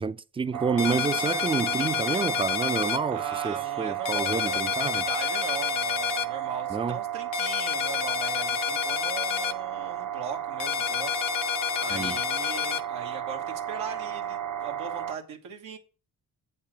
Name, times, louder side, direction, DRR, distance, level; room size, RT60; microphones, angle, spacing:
voice 1, 0.0-5.0 6.7-7.0 11.9-12.2, right 5 dB, 15° right, 0.3 m, -29 dB
sound 1, 0.5-15.2, right 11 dB, 45° right, 0.8 m, -33 dB
sound 2, 0.8-3.0 4.1-6.3 7.3-9.5 10.6-12.8, left 11 dB, 75° left, 0.7 m, -29 dB
voice 2, 3.1-4.6 4.8-11.1 11.8-15.8, right 7 dB, 85° right, 1.4 m, -39 dB
7.8 x 4.3 x 5.9 m
supercardioid pair, 45°, 45 cm